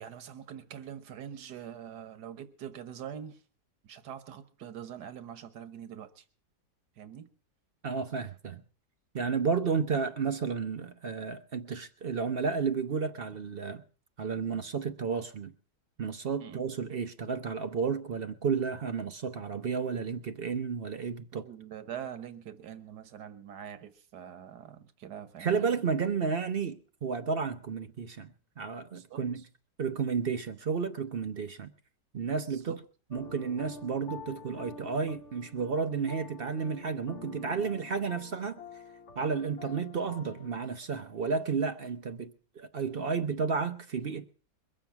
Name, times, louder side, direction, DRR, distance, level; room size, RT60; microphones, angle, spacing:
voice 1, 0.0-3.4 3.8-6.2 7.0-7.3 16.4-16.6 21.3-25.7 28.9-29.3 32.5-32.8, right 9 dB, 75° right, 1.7 m, -44 dB
voice 2, 7.8-8.6 9.1-13.8 14.2-15.5 16.0-21.4 25.4-29.4 29.8-31.7 32.1-32.8 33.1-38.6 39.2-44.3, right 5 dB, 50° right, 0.7 m, -32 dB
sound 1, 33.1-40.6, left 4 dB, 50° left, 1.1 m, -48 dB
22.5 x 7.6 x 5.7 m
omnidirectional pair, 1.8 m